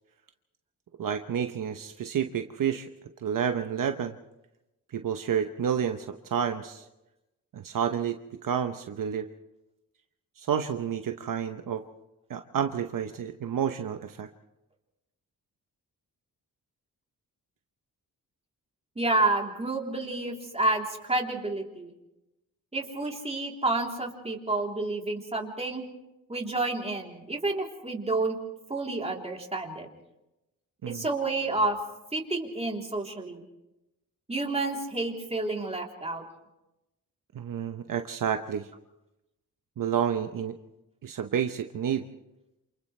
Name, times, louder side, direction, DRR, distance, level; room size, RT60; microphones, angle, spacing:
voice 1, 1.0-2.9 3.2-4.2 4.9-6.8 7.5-9.3 10.4-11.8 12.3-14.3 30.8-31.0 37.3-38.7 39.8-40.5 41.0-42.0, right 8 dB, 65° right, 6 dB, 1.0 m, -30 dB
voice 2, 19.0-21.9 22.7-25.9 26.3-28.4 28.7-29.9 30.9-31.8 32.1-33.4 34.3-36.2, right 2 dB, 20° right, 0 dB, 3.5 m, -29 dB
28.0 x 28.0 x 3.3 m, 0.93 s
cardioid pair, 100°, 35 cm